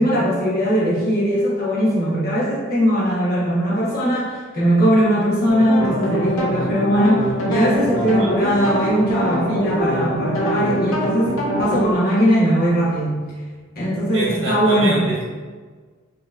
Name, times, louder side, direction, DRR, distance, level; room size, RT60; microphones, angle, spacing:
voice 1, 0.0-13.2 13.8-15.1, equal, 45° left, -7 dB, 1.2 m, -19 dB
sound 1, 5.5-11.9, equal, 80° left, 0.8 m, -23 dB
voice 2, 7.9-8.4 14.1-15.2, right 1 dB, 70° right, -6 dB, 1.4 m, -26 dB
4.1 x 3.1 x 2.5 m, 1.4 s
head